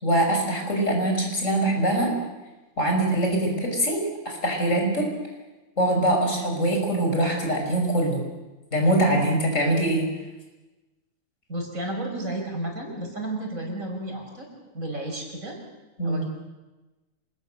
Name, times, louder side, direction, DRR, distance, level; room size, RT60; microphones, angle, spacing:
voice 1, 0.0-2.1 2.8-5.1 5.8-8.2 8.7-10.1 16.0-16.3, right 1 dB, 65° left, 2 dB, 6.1 m, -23 dB
voice 2, 11.5-14.5 14.7-15.6 16.0-16.3, right 1 dB, 80° right, 1 dB, 6.0 m, -32 dB
26.5 x 21.0 x 6.7 m, 1.1 s
omnidirectional pair, 1.4 m